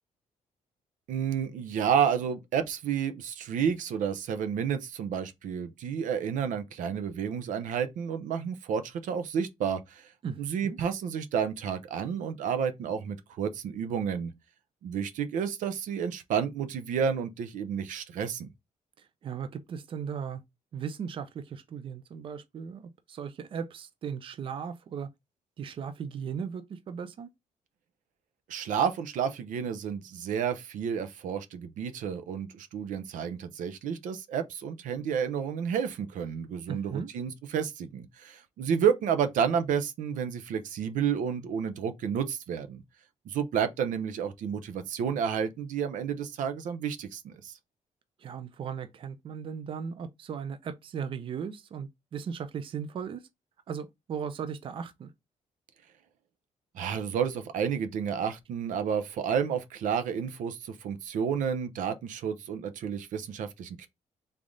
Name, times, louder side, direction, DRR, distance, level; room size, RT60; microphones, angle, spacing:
voice 1, 1.1-10.1 10.4-14.3 14.8-18.5 28.5-42.8 43.3-47.5 56.7-63.9, right 7 dB, 85° right, 0.7 m, -30 dB
voice 2, 10.2-10.8 19.0-20.4 20.7-25.1 25.6-27.3 36.7-37.1 48.2-53.2 53.7-55.1, right 7 dB, 45° right, 0.5 m, -37 dB
3.7 x 3.4 x 3.8 m
cardioid pair, 160°, 13 cm